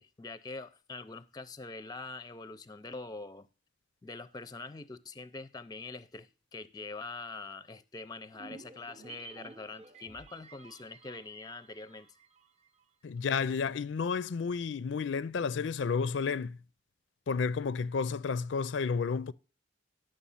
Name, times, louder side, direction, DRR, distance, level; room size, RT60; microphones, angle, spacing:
voice 1, 0.0-3.5 4.0-12.1, left 3 dB, 20° left, 0.4 m, -44 dB
sound 1, 8.3-12.8 13.1-13.2, right 4 dB, 35° right, 0.7 m, -52 dB
voice 2, 13.0-16.6 17.3-19.3, left 5 dB, 75° left, 0.4 m, -31 dB
10.0 x 6.6 x 5.6 m
head